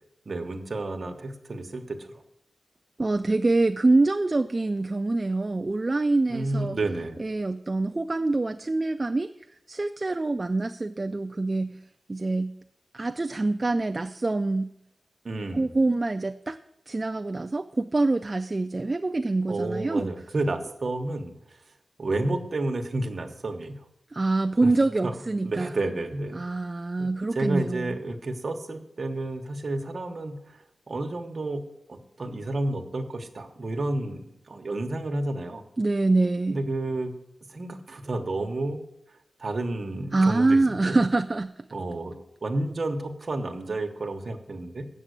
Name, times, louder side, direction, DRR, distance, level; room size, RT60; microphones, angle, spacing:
voice 1, 0.2-2.2 6.3-7.2 15.2-15.7 19.5-21.6 22.0-23.8 24.6-24.7 25.0-25.1 25.4-26.4 27.0-31.6 31.9-35.6 36.5-37.1 37.5-38.8 39.4-40.6 40.9-41.0 41.7-42.1 42.4-44.9, right 2 dB, 40° right, 4 dB, 1.2 m, -31 dB
voice 2, 3.0-6.8 7.2-9.3 9.7-11.8 12.1-12.5 12.9-14.7 15.5-16.6 16.9-20.1 24.1-25.7 26.3-28.0 35.8-36.6 40.1-41.6, right 2 dB, 25° right, 8 dB, 0.3 m, -25 dB
7.4 x 7.3 x 8.1 m, 0.80 s
wide cardioid pair, 155°, 0 cm